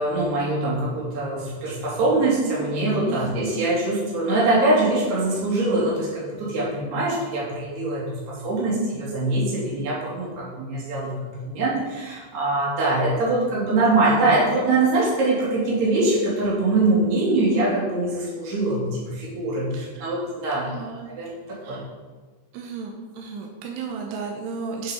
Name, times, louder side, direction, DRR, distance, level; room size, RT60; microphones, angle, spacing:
voice 1, 0.0-20.7 21.1-21.3 21.7-21.8, right 2 dB, 45° right, -6 dB, 3.3 m, -23 dB
voice 2, 3.1-3.4 19.7-20.1 20.5-21.1 21.6-21.8 22.5-24.9, right 5 dB, 80° right, 1 dB, 3.3 m, -34 dB
8.9 x 6.6 x 5.1 m, 1.4 s
omnidirectional pair, 5.6 m